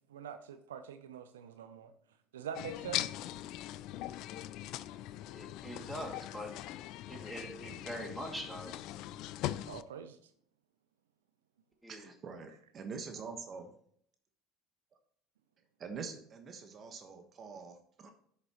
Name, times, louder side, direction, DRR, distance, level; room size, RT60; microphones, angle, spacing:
voice 1, 0.1-1.9 2.3-3.1 9.7-10.2, right 8 dB, 80° right, 9 dB, 0.5 m, -44 dB
sound 1, 2.6-9.8, left 14 dB, 60° left, 0.4 m, -41 dB
voice 2, 5.3-6.5 7.1-8.7 11.8-12.1, equal, 5° right, 2 dB, 2.4 m, -43 dB
voice 3, 11.9-13.7 15.8-18.1, right 5 dB, 40° right, 6 dB, 1.3 m, -45 dB
11.0 x 6.6 x 3.0 m, 0.64 s
hypercardioid pair, 65°, 0 cm